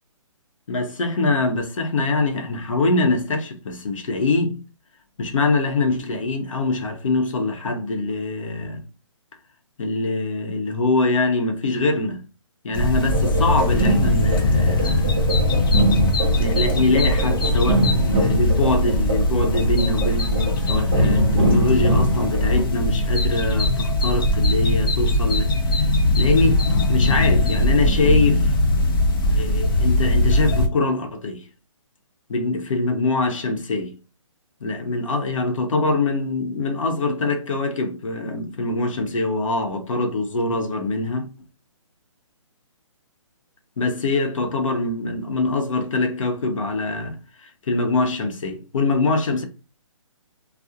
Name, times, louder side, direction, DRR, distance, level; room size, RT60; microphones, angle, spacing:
voice 1, 0.7-4.6 5.2-8.8 9.8-12.2 12.6-15.3 16.4-26.6 26.9-28.5 29.2-31.5 32.3-33.9 34.6-41.3 43.8-49.4, left 3 dB, 75° left, 0.8 m, -23 dB
sound 1, 12.7-30.7, left 1 dB, 40° left, 0.5 m, -20 dB
sound 2, 13.0-22.6, right 1 dB, 10° right, 0.4 m, -24 dB
2.4 x 2.0 x 2.7 m
hypercardioid pair, 165°, 17 cm